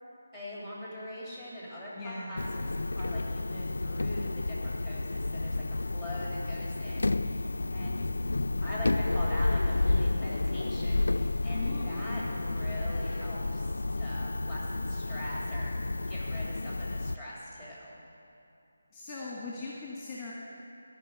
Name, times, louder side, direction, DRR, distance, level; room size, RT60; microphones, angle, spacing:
voice 1, 0.3-2.7 3.0-8.1 8.6-15.7 16.1-18.0, equal, 15° right, -7 dB, 3.1 m, -42 dB
voice 2, 2.0-2.5 11.5-12.2 18.9-20.3, left 3 dB, 15° left, -5 dB, 1.5 m, -40 dB
sound 1, 2.4-17.2, left 2 dB, 65° left, 0.3 m, -31 dB
14.0 x 5.9 x 9.3 m, 2.7 s
figure-of-eight pair, 155°, 0 cm